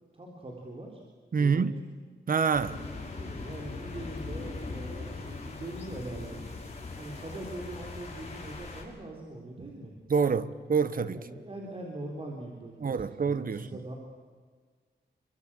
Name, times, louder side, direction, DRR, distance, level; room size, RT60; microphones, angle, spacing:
voice 1, 0.1-1.0 1.4-1.8 2.7-6.5 7.0-10.0 11.1-13.9, right 1 dB, 30° right, 4.0 m, -42 dB
voice 2, 1.3-1.8 2.3-2.8 9.6-9.7 10.1-11.2 12.8-13.7, right 5 dB, 50° right, 1.2 m, -27 dB
sound 1, 2.5-8.8, left 3 dB, 35° left, 6.1 m, -40 dB
28.0 x 23.5 x 9.1 m
wide cardioid pair, 170°, 18 cm